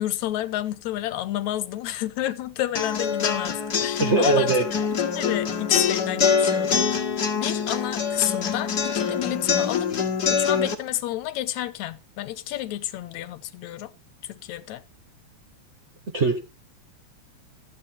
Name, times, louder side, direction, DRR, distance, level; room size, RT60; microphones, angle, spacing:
voice 1, 0.0-4.7 4.9-6.9 7.4-9.9 10.3-13.9 14.3-14.8, left 14 dB, 80° left, 2.2 m, -30 dB
sound 1, 2.8-10.7, left 6 dB, 40° left, 1.7 m, -24 dB
voice 2, 4.0-4.7 16.1-16.4, right 3 dB, 85° right, 0.6 m, -21 dB
13.5 x 8.9 x 4.4 m
omnidirectional pair, 3.3 m